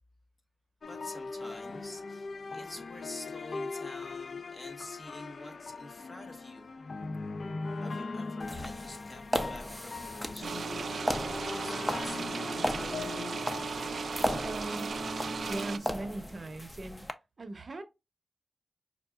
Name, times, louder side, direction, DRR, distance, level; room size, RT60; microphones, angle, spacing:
sound 1, 0.8-16.3, left 3 dB, 65° left, 0.4 m, -40 dB
voice 1, 0.9-6.7 7.8-13.1, left 1 dB, 45° left, 1.2 m, -48 dB
sound 2, 8.4-17.1, left 1 dB, 10° left, 0.6 m, -37 dB
sound 3, 10.4-15.8, right 5 dB, 75° right, 0.3 m, -36 dB
voice 2, 14.3-15.0 15.5-17.8, right 2 dB, 55° right, 0.7 m, -40 dB
5.4 x 2.3 x 2.3 m
cardioid pair, 55°, 0 cm